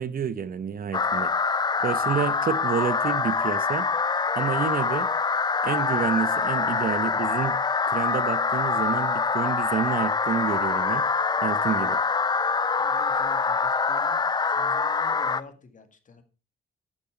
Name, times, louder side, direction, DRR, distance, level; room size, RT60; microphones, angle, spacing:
voice 1, 0.0-1.3 1.8-3.9 4.3-5.1 5.6-7.6 7.9-11.0 11.4-12.0, right 7 dB, 45° right, 0.8 m, -29 dB
sound 1, 0.9-15.4, left 4 dB, 20° left, 0.5 m, -25 dB
voice 2, 12.8-14.2 14.5-16.2, left 4 dB, 40° left, 1.9 m, -47 dB
12.0 x 7.0 x 5.0 m
cardioid pair, 90°, 20 cm